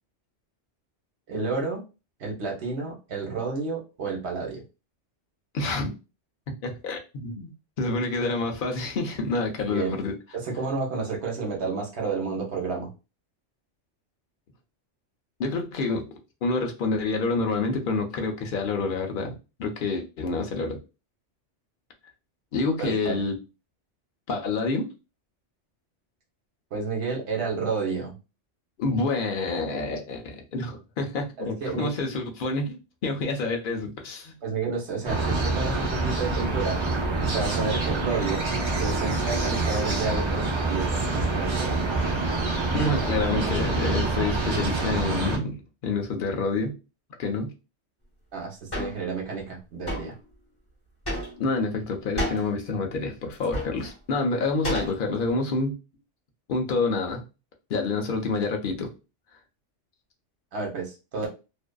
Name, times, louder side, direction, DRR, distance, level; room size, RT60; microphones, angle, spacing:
voice 1, 1.3-1.8 2.2-4.6 9.6-9.9 10.3-12.9 22.8-23.2 26.7-28.1 31.4-31.9 34.4-36.8 37.2-38.5 38.7-41.8 48.3-50.1 60.5-61.3, right 4 dB, 65° right, 0 dB, 1.1 m, -30 dB
voice 2, 5.5-5.9 6.6-7.5 7.8-10.1 15.4-16.1 16.4-19.3 19.6-20.8 22.5-23.4 24.3-24.9 28.8-34.4 42.7-45.6 45.8-46.7 47.2-47.5 51.4-55.7 56.5-57.2 57.7-58.9, left 3 dB, 55° left, 3 dB, 0.6 m, -28 dB
sound 1, 35.0-45.4, right 3 dB, 40° right, 0.4 m, -26 dB
sound 2, 48.7-49.0 49.9-50.1 51.0-51.5 52.2-52.5 53.3-53.9 54.6-55.3, left 1 dB, 20° left, 1.3 m, -30 dB
2.6 x 2.3 x 2.2 m, 0.30 s
omnidirectional pair, 1.2 m